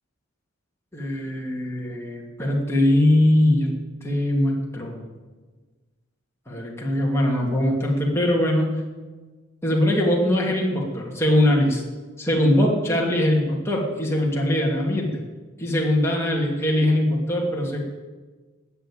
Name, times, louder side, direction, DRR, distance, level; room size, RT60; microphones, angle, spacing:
voice 1, 0.9-3.7 4.0-5.1 6.5-8.7 9.6-11.8 12.2-15.2 15.6-17.8, left 1 dB, 10° left, -2 dB, 2.7 m, -21 dB
19.0 x 7.0 x 8.8 m, 1.3 s
head